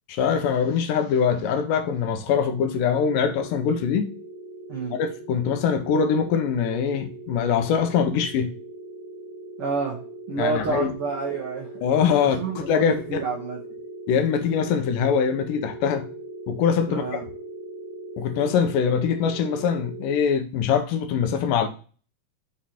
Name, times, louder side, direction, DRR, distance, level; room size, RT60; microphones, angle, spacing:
voice 1, 0.1-4.1 4.9-8.5 10.4-10.9 11.8-13.0 14.1-16.1 16.5-17.0 18.2-21.7, left 7 dB, 85° left, 2.4 m, -23 dB
sound 1, 2.5-20.2, right 2 dB, 50° right, 1.4 m, -40 dB
voice 2, 9.6-11.7 12.2-13.6 16.9-17.2, right 4 dB, 75° right, 1.2 m, -29 dB
6.2 x 4.0 x 4.2 m
omnidirectional pair, 3.9 m